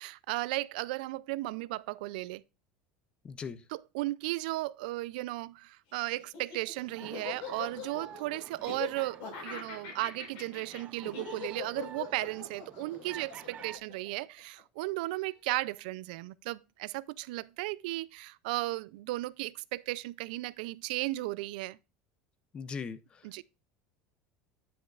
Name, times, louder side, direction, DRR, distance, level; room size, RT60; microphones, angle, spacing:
voice 1, 0.0-2.4 3.7-21.8 23.2-23.4, right 19 dB, 85° right, 0.3 m, -35 dB
voice 2, 3.2-3.6 22.5-23.4, left 5 dB, 20° left, 0.5 m, -40 dB
Laughter, 6.2-14.6, left 7 dB, 65° left, 4.5 m, -42 dB
sound 1, 6.8-13.8, right 9 dB, 30° right, 0.5 m, -50 dB
9.7 x 6.3 x 2.4 m
cardioid pair, 160°, 5 cm